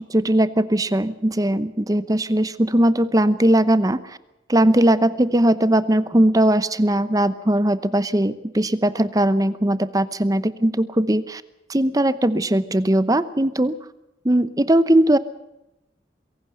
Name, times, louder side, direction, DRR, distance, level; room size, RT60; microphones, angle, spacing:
voice 1, 0.0-4.2 4.5-11.4 11.7-13.8 14.2-15.2, right 1 dB, 20° right, 15 dB, 0.8 m, -19 dB
23.0 x 17.0 x 6.7 m, 0.91 s
head